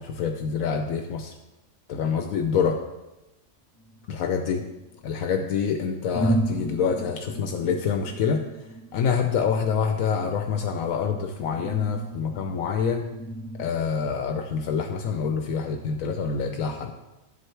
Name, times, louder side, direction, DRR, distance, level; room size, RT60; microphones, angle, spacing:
voice 1, 0.0-1.3 1.9-2.8 4.1-4.6 5.0-8.4 8.9-13.1 13.6-17.0, left 6 dB, 80° left, 5 dB, 1.1 m, -26 dB
sound 1, 3.8-5.1 5.7-5.8 6.1-13.7, right 1 dB, 15° left, 1.9 m, -34 dB
10.5 x 7.6 x 3.3 m, 1.0 s
omnidirectional pair, 1.4 m